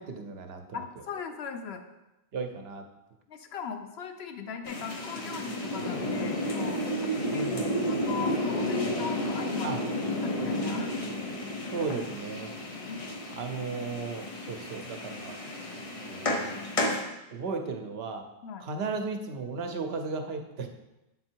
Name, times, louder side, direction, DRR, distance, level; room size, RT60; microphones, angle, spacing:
voice 1, 0.0-0.8 2.3-2.8 7.3-7.7 9.6-9.8 11.7-12.5 13.4-15.4 15.7-16.6 17.3-18.2 18.6-20.7, right 4 dB, 75° right, 5 dB, 0.9 m, -35 dB
voice 2, 0.7-1.8 3.3-7.6 7.9-9.7 10.0-10.9 12.9-13.0 16.7-17.0 18.4-18.7, left 6 dB, 80° left, 6 dB, 0.9 m, -39 dB
sound 1, 4.6-17.0, left 1 dB, 35° left, 0.7 m, -32 dB
7.4 x 3.8 x 4.4 m, 0.97 s
omnidirectional pair, 1.1 m